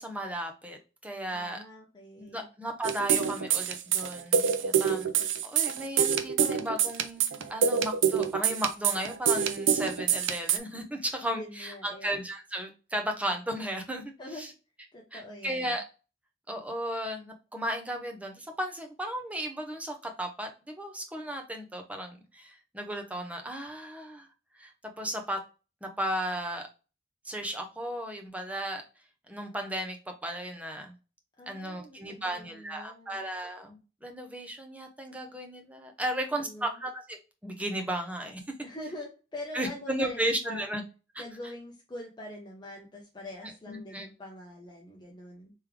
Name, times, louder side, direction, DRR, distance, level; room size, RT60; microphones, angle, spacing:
voice 1, 0.0-1.6 2.2-14.5 15.1-15.8 16.5-24.3 24.6-25.4 25.8-26.6 27.2-28.8 29.3-30.0 30.2-30.9 31.5-37.2 37.4-38.4 39.5-40.8 41.1-41.2 43.4-44.1, right 1 dB, 10° right, 3 dB, 0.7 m, -35 dB
voice 2, 1.3-2.5 11.3-12.1 14.2-14.5 14.9-15.8 31.4-33.2 36.1-36.8 38.6-40.7 41.2-45.5, left 1 dB, 25° left, -1 dB, 0.8 m, -44 dB
sound 1, 2.8-10.6, right 7 dB, 85° right, 0.5 m, -26 dB
3.5 x 3.2 x 3.2 m, 0.33 s
head